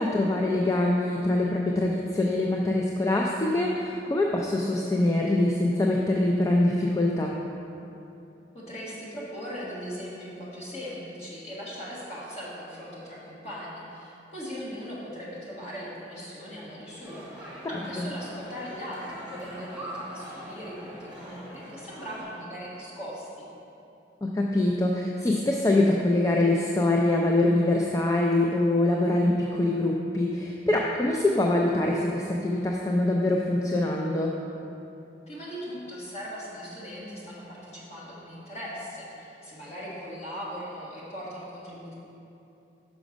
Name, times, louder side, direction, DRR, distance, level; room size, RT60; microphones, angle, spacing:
voice 1, 0.0-7.3 18.0-18.1 24.2-34.3, left 2 dB, 20° left, -1 dB, 0.3 m, -24 dB
voice 2, 8.5-23.4 35.3-41.9, equal, 35° left, -7 dB, 1.6 m, -39 dB
sound 1, 17.0-22.2, equal, 5° right, 1.4 m, -42 dB
6.1 x 5.1 x 5.1 m, 2.8 s
head